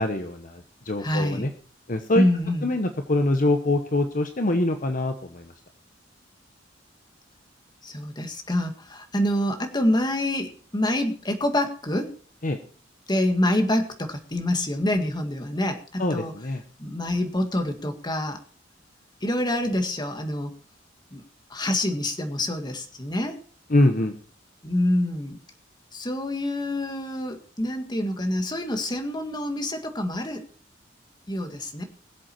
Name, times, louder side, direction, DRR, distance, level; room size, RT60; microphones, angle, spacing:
voice 1, 0.0-1.5 1.9-2.2 2.6-5.5 12.4-12.6 16.0-16.6 23.7-24.1, left 1 dB, 45° left, 6 dB, 1.1 m, -24 dB
voice 2, 1.0-1.5 2.2-2.7 7.8-12.1 13.1-16.3 16.8-18.4 19.2-20.5 21.1-21.2 21.5-23.4 24.6-25.4 25.9-30.5 31.3-31.8, left 1 dB, 25° left, 5 dB, 1.9 m, -26 dB
22.0 x 7.8 x 4.5 m, 0.43 s
head